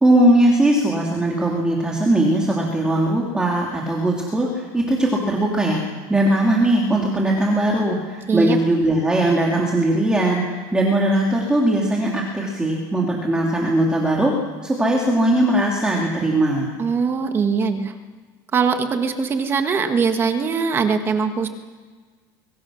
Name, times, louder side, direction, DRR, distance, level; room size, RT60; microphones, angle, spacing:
voice 1, 0.0-5.8 6.1-14.3 14.6-16.7, right 1 dB, 10° right, -2 dB, 2.8 m, -19 dB
voice 2, 8.3-8.6 16.8-17.9 18.5-21.5, right 5 dB, 25° right, 6 dB, 1.5 m, -21 dB
26.0 x 23.5 x 6.4 m, 1.5 s
cardioid pair, 160°, 10 cm